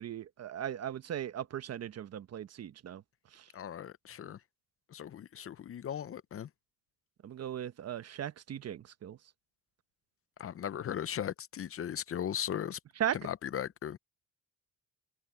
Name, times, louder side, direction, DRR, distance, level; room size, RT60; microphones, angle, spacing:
voice 1, 0.0-3.0 3.3-3.4 7.2-9.2 13.0-13.2, right 10 dB, 55° right, 1.1 m, -37 dB
voice 2, 3.5-4.4 4.9-6.5 10.4-12.8 13.1-14.0, left 9 dB, 45° left, 0.7 m, -37 dB
cardioid pair, 90°, 30 cm